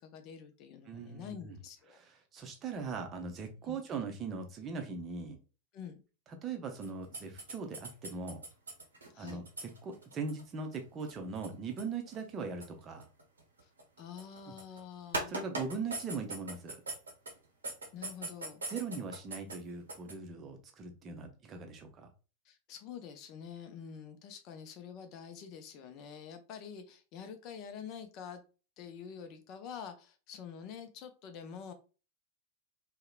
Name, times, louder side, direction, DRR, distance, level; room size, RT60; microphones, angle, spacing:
voice 1, 0.0-2.0 3.7-3.8 5.7-6.0 9.1-9.4 13.6-13.7 14.0-15.3 17.9-18.6 22.4-28.4 28.8-31.7, left 7 dB, 40° left, 7 dB, 0.4 m, -47 dB
voice 2, 0.9-1.6 1.9-5.4 6.4-8.4 9.1-13.1 14.4-14.5 15.3-16.8 18.7-22.1, right 4 dB, 25° right, 4 dB, 0.5 m, -40 dB
sound 1, 6.8-14.8 15.1-17.4 17.6-19.6 19.9-20.1, right 2 dB, 75° right, 0.7 m, -40 dB
2.8 x 2.0 x 2.3 m, 0.33 s
figure-of-eight pair, 90°, 0 cm